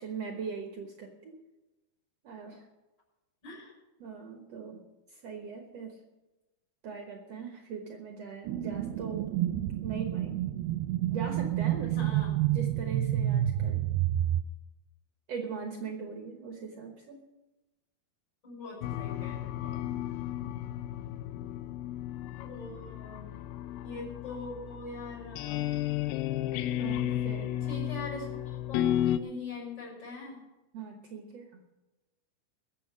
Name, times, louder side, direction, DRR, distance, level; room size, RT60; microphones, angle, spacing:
voice 1, 0.0-1.4 2.2-2.7 4.0-6.0 6.8-9.3 9.8-10.5 11.1-12.0 12.5-13.8 15.3-17.2 20.4-20.5 26.8-27.5 30.7-31.6, right 5 dB, 65° right, 3 dB, 1.7 m, -40 dB
voice 2, 3.4-3.7 11.9-12.4 18.4-20.0 22.4-23.3 23.8-25.6 27.6-30.4, left 3 dB, 25° left, -3 dB, 6.7 m, -43 dB
sound 1, 8.4-14.4, right 13 dB, 80° right, 2.3 m, -29 dB
sound 2, 18.8-29.2, left 12 dB, 80° left, 2.3 m, -33 dB
21.5 x 7.5 x 6.1 m, 1.1 s
omnidirectional pair, 4.5 m